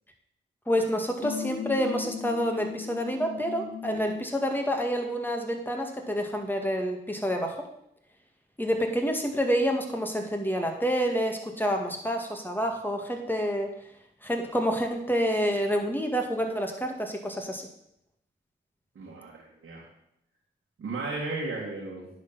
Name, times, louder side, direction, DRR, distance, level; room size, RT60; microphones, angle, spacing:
voice 1, 0.7-7.6 8.6-13.7 14.2-17.7, equal, 10° left, 3 dB, 2.0 m, -28 dB
sound 1, 1.2-4.4, left 7 dB, 55° left, 0.8 m, -37 dB
voice 2, 19.0-19.8 20.8-22.1, right 3 dB, 80° right, -5 dB, 1.9 m, -35 dB
10.0 x 4.3 x 5.7 m, 0.77 s
cardioid pair, 45°, 21 cm